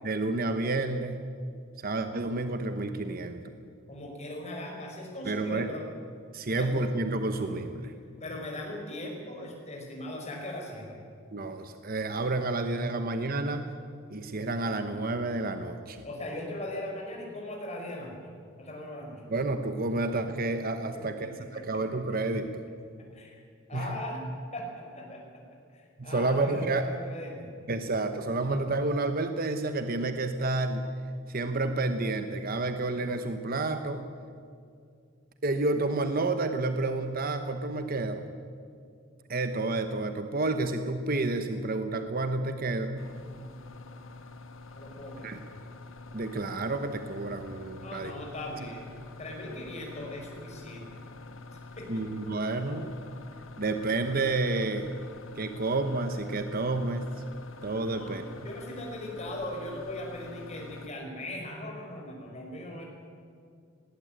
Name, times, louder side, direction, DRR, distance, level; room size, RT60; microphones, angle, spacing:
voice 1, 0.0-1.2 1.8-3.4 5.2-5.7 6.3-7.9 11.3-13.7 14.1-16.0 19.3-22.6 23.7-24.0 26.0-26.8 27.7-30.9 31.3-34.0 35.4-38.2 39.3-43.0 45.2-45.4 46.1-48.1 51.9-52.9 53.6-54.9 55.3-57.1 57.6-58.2, right 2 dB, 45° right, 8 dB, 1.0 m, -30 dB
voice 2, 3.9-5.8 6.5-6.7 8.2-11.0 16.0-18.3 18.6-19.2 20.9-21.0 21.5-21.6 23.1-23.4 23.7-24.2 24.5-25.2 25.7-27.5 44.7-45.6 47.8-48.9 49.2-51.0 51.8-52.1 57.9-62.8, left 1 dB, 35° left, 0 dB, 5.2 m, -39 dB
sound 1, 43.0-60.9, left 3 dB, 75° left, 1.5 m, -46 dB
19.0 x 17.5 x 9.0 m, 2.3 s
head